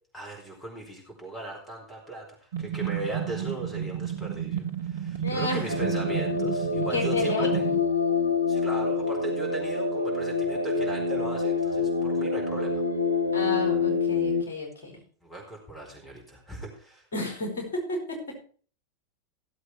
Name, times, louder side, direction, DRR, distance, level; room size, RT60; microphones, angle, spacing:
voice 1, 0.1-7.7 8.5-12.8 15.2-17.0, right 2 dB, 10° left, 0 dB, 4.6 m, -38 dB
sound 1, 2.5-7.8, right 9 dB, 65° right, 1.3 m, -32 dB
voice 2, 5.2-5.7 6.9-7.5 13.3-15.0 17.1-18.2, left 2 dB, 55° left, 1 dB, 5.4 m, -31 dB
sound 2, 5.7-14.4, left 4 dB, 85° right, 0.8 m, -26 dB
16.0 x 8.0 x 4.5 m, 0.42 s
figure-of-eight pair, 90°, 0 cm